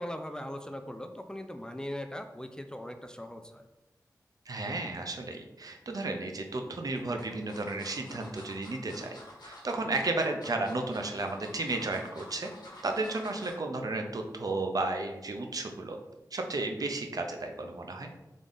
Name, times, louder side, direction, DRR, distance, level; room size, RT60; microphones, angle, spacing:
voice 1, 0.0-3.6 9.8-9.9, left 1 dB, 10° left, 6 dB, 0.4 m, -40 dB
voice 2, 4.5-9.2 9.4-12.5 12.8-16.0 16.3-18.1, right 2 dB, 60° right, 4 dB, 0.6 m, -33 dB
sound 1, 6.1-6.2 6.9-13.7 14.1-14.3 14.6-14.7, left 1 dB, 90° left, 1.2 m, -50 dB
3.7 x 3.7 x 3.8 m, 1.0 s
wide cardioid pair, 80°, 7 cm